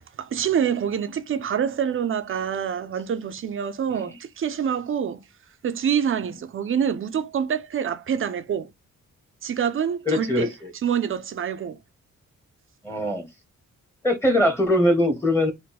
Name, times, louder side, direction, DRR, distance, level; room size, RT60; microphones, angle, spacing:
voice 1, 0.2-5.2 5.6-8.7 9.4-10.5 10.8-11.8, right 8 dB, 45° right, 0.5 m, -26 dB
voice 2, 10.1-10.7 12.8-13.3 14.0-15.5, left 1 dB, 10° left, 0.9 m, -22 dB
4.4 x 2.2 x 4.0 m
wide cardioid pair, 155°, 30 cm